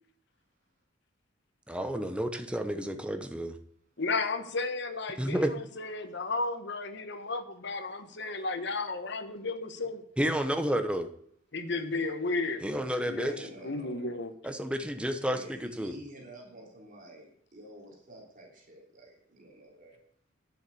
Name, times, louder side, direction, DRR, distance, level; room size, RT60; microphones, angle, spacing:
voice 1, 1.7-3.6 5.2-5.5 10.2-11.1 12.6-13.5 14.4-15.9, equal, 5° right, 7 dB, 0.9 m, -31 dB
voice 2, 4.0-10.0 11.5-12.6 13.0-14.3, left 3 dB, 60° left, 9 dB, 1.3 m, -33 dB
voice 3, 12.9-14.2 15.2-20.0, right 1 dB, 40° right, -1 dB, 3.4 m, -49 dB
10.5 x 7.2 x 8.6 m, 0.64 s
head